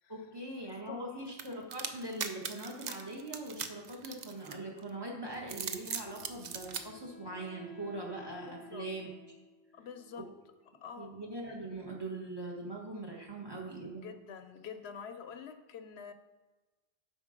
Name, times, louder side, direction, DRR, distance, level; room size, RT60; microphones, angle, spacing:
voice 1, 0.1-9.1 10.2-10.3 11.0-14.1, right 2 dB, 20° right, -1 dB, 1.5 m, -41 dB
voice 2, 0.8-1.2 8.5-8.9 9.7-10.3 10.8-11.2 13.8-16.1, left 7 dB, 75° left, 9 dB, 0.9 m, -47 dB
sound 1, 1.4-4.8 5.4-6.8, right 7 dB, 50° right, 0.6 m, -39 dB
Wind instrument woodwind instrument, 5.7-10.8, left 3 dB, ahead, 1.0 m, -55 dB
8.0 x 5.6 x 5.1 m, 1.2 s
omnidirectional pair, 1.1 m